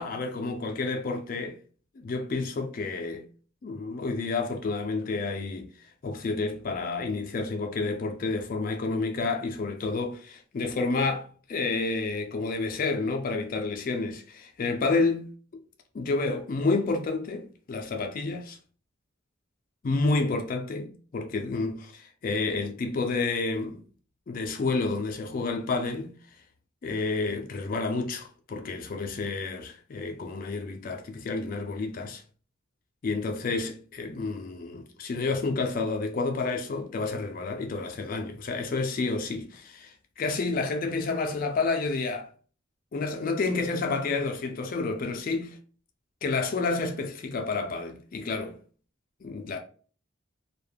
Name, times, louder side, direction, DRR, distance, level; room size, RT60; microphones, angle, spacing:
voice 1, 0.0-1.6 2.0-3.2 3.6-15.3 15.9-18.6 19.8-23.8 24.3-26.2 26.8-32.2 33.0-42.3 42.9-45.6 46.2-48.6 49.2-49.6, left 3 dB, 45° left, 0.4 m, -30 dB
2.2 x 2.0 x 3.2 m
head